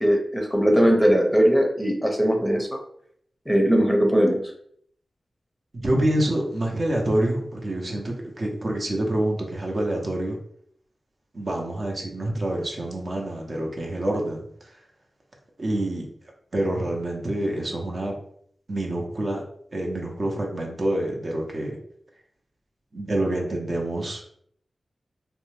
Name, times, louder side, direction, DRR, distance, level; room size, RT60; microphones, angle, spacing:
voice 1, 0.0-2.8 3.5-4.4, equal, 5° left, 1 dB, 0.6 m, -20 dB
voice 2, 5.7-10.4 11.3-14.7 15.6-16.1 16.5-18.1 18.7-19.4 19.7-21.8 22.9-24.2, right 1 dB, 55° right, 0 dB, 0.6 m, -27 dB
2.6 x 2.1 x 3.1 m, 0.66 s
cardioid pair, 50°, 0 cm